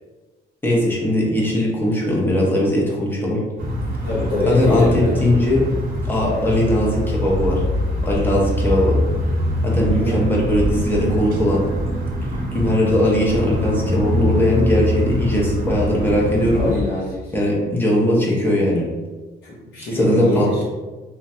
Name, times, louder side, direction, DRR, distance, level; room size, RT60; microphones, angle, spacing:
voice 1, 0.6-3.4 4.5-5.7 6.0-7.6 8.0-9.0 9.6-11.6 12.5-16.7 17.3-18.9 19.9-20.6, left 1 dB, 10° left, -3 dB, 0.5 m, -19 dB
sound 1, 3.6-16.8, equal, 55° right, 0.7 m, -23 dB
voice 2, 4.0-5.3 9.9-10.2 16.5-17.3 19.4-20.6, left 2 dB, 85° left, -8 dB, 0.7 m, -24 dB
3.2 x 2.1 x 2.7 m, 1.3 s
cardioid pair, 160°, 18 cm